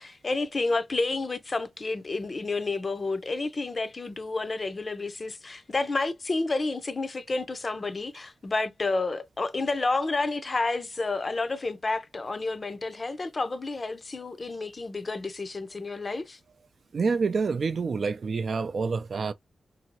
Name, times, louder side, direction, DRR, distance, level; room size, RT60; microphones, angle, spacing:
voice 1, 0.0-16.4, left 3 dB, 40° left, 0.5 m, -30 dB
voice 2, 16.9-19.3, right 4 dB, 65° right, 0.3 m, -27 dB
2.8 x 2.7 x 2.9 m
cardioid pair, 80°, 0 cm